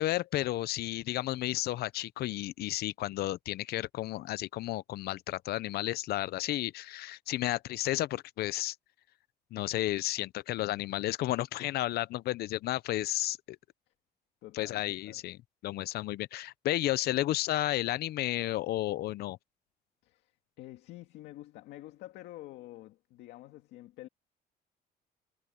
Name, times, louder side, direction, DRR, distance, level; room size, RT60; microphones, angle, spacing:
voice 1, 0.0-8.8 9.5-13.6 14.5-15.4 15.6-19.4, left 15 dB, 70° left, 0.7 m, -32 dB
voice 2, 14.4-15.2 20.0-24.1, left 16 dB, 85° left, 2.1 m, -48 dB
cardioid pair, 110°, 17 cm